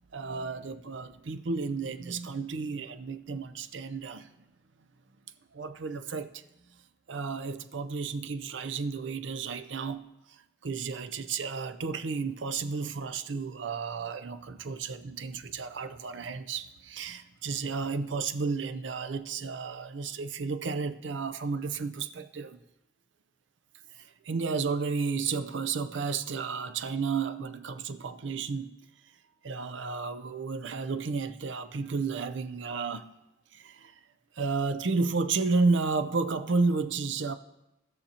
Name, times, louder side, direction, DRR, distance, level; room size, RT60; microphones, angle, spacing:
voice 1, 0.1-4.3 5.5-6.4 7.1-10.1 10.6-22.6 23.9-28.8 29.4-33.1 33.5-33.9 34.4-37.3, right 4 dB, 80° right, 0.5 m, -32 dB
18.5 x 6.6 x 2.9 m
head